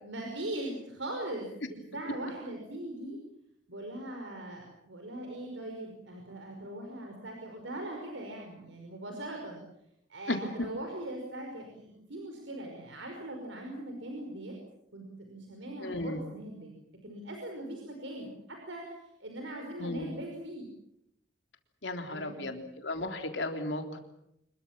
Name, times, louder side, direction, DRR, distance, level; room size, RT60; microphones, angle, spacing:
voice 1, 0.0-3.2 3.7-9.6 10.1-14.5 14.9-16.7 17.0-20.7 22.0-22.7, right 1 dB, 75° right, 2 dB, 5.4 m, -40 dB
voice 2, 15.8-16.2 19.8-20.1 21.8-24.0, left 2 dB, 70° left, 5 dB, 3.6 m, -35 dB
26.5 x 22.5 x 7.5 m, 0.79 s
head